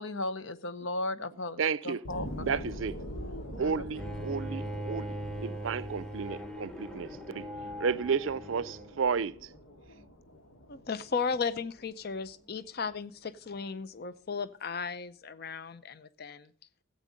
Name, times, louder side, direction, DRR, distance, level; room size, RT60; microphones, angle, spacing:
voice 1, 0.0-2.3 2.5-2.6 3.6-3.8 4.2-4.3, left 2 dB, 65° left, 0.9 m, -36 dB
voice 2, 1.6-2.0 2.4-2.9 3.6-7.4 7.8-9.5, right 6 dB, 70° right, 0.5 m, -32 dB
sound 1, 2.0-13.0 13.5-13.6, equal, 90° left, 2.1 m, -44 dB
Bowed string instrument, 4.0-9.0, equal, 5° left, 0.9 m, -40 dB
voice 3, 10.7-16.5, left 5 dB, 45° left, 0.6 m, -35 dB
14.5 x 8.4 x 5.1 m
head